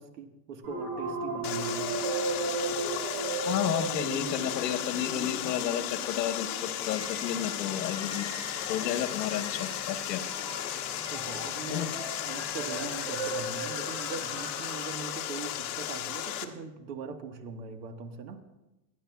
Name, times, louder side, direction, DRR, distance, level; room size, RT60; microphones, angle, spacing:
voice 1, 0.0-1.9 11.0-18.4, right 5 dB, 85° right, 7 dB, 1.6 m, -41 dB
sound 1, 0.6-15.2, right 3 dB, 45° right, 2.5 m, -37 dB
Water, 1.4-16.4, left 12 dB, 60° left, 1.2 m, -35 dB
voice 2, 3.4-8.3 8.7-10.2 11.7-11.9, left 10 dB, 80° left, 8 dB, 1.3 m, -32 dB
24.5 x 10.0 x 2.3 m, 1.0 s
supercardioid pair, 170°, 49 cm